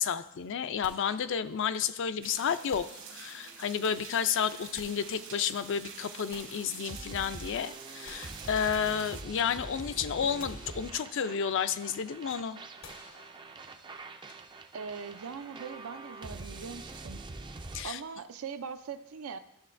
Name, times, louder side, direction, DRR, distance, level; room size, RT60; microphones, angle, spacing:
voice 1, 0.0-2.9 3.1-12.6 17.7-18.0, left 7 dB, 60° left, 12 dB, 0.4 m, -31 dB
sound 1, 0.8-1.9 2.7-3.8 4.4-5.8 6.3-7.4 7.8-9.3 9.7-9.8 10.4-11.5 12.8-13.9, left 3 dB, 80° left, 1.1 m, -54 dB
sound 2, 2.2-9.2, right 6 dB, 60° right, 1.2 m, -47 dB
sound 3, 6.8-17.8, right 3 dB, 20° right, 0.4 m, -45 dB
voice 2, 14.7-17.2 17.8-19.4, right 6 dB, 80° right, 11 dB, 0.5 m, -41 dB
12.5 x 6.5 x 2.6 m, 0.83 s
head